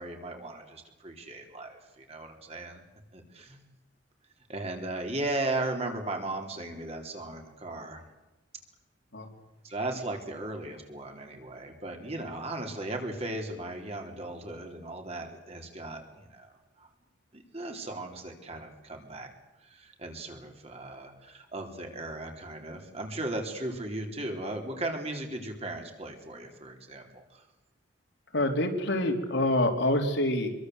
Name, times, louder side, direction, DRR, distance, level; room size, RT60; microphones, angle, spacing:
voice 1, 0.0-2.8 3.1-3.6 4.5-8.0 9.6-16.9 17.3-19.3 19.6-27.4, right 2 dB, 35° right, 3 dB, 3.8 m, -37 dB
voice 2, 28.3-30.5, left 1 dB, 70° left, 3 dB, 3.6 m, -26 dB
25.5 x 23.0 x 8.0 m, 1.0 s
head